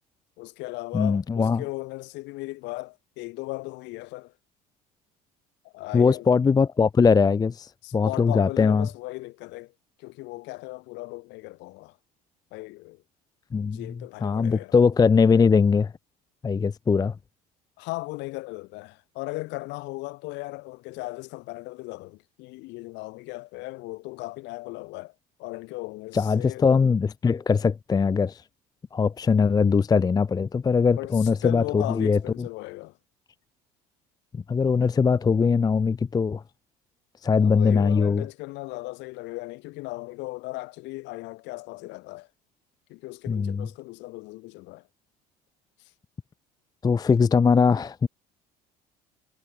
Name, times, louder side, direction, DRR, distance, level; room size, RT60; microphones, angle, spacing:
voice 1, 0.4-4.3 5.6-6.3 7.8-9.7 10.0-12.0 12.5-13.0 13.6-14.7 17.8-25.1 25.4-26.6 31.0-33.0 37.4-42.3 42.9-44.8, left 22 dB, 65° left, 2.8 m, -37 dB
voice 2, 0.9-1.6 5.9-8.9 13.5-13.9 14.2-15.9 16.4-17.2 26.1-28.4 28.9-32.2 34.3-36.4 37.2-38.2 43.3-43.7 46.8-48.1, left 5 dB, 20° left, 0.5 m, -21 dB
hypercardioid pair, 70°, 20 cm